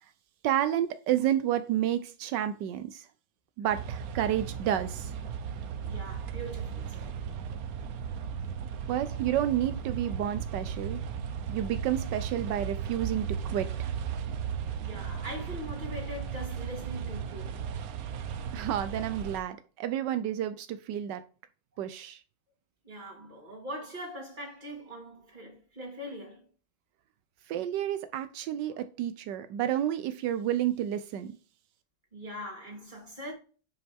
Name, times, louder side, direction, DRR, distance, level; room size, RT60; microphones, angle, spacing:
voice 1, 0.4-3.1 3.6-5.1 8.9-11.0 11.5-13.9 18.5-21.2 21.8-22.2 27.5-31.4, right 11 dB, 85° right, 1.3 m, -30 dB
sound 1, 3.7-19.4, right 7 dB, 65° right, 1.1 m, -36 dB
voice 2, 5.8-7.1 11.0-11.1 14.8-17.6 22.8-26.5 32.1-33.3, equal, 25° right, 2.8 m, -42 dB
7.7 x 5.6 x 3.5 m
omnidirectional pair, 1.9 m